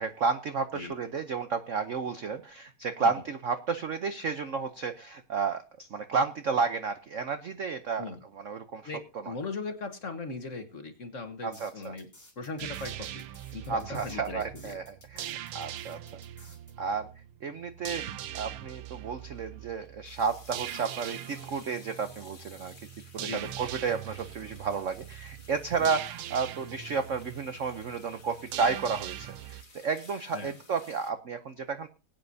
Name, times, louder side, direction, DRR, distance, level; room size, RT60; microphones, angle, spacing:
voice 1, 0.0-8.0 8.4-8.8 11.4-11.9 13.7-16.0 16.8-17.1 17.4-22.7 23.1-31.9, right 5 dB, 65° right, 9 dB, 0.7 m, -32 dB
voice 2, 8.8-12.1 12.4-13.2 13.5-14.8 23.2-23.5 25.8-25.9 30.3-30.6, left 3 dB, 40° left, 7 dB, 1.5 m, -39 dB
sound 1, 11.5-16.7, left 1 dB, 10° left, 2.8 m, -55 dB
sound 2, 12.6-29.6, right 12 dB, 85° right, 1.7 m, -42 dB
sound 3, 19.8-31.1, left 3 dB, 25° left, 1.8 m, -55 dB
21.0 x 9.1 x 2.7 m, 0.33 s
omnidirectional pair, 2.4 m